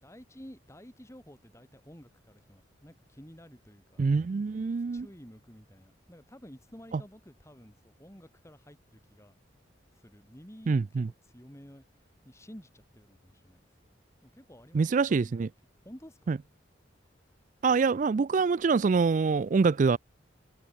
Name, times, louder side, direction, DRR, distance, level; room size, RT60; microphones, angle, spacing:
voice 1, 0.0-4.0 4.9-9.4 9.9-13.7 14.2-15.4 15.8-16.4, equal, 15° left, 3.7 m, -52 dB
voice 2, 4.0-5.1 10.7-11.1 14.7-15.5 16.3-16.4 17.6-20.0, right 4 dB, 40° right, 0.3 m, -25 dB
head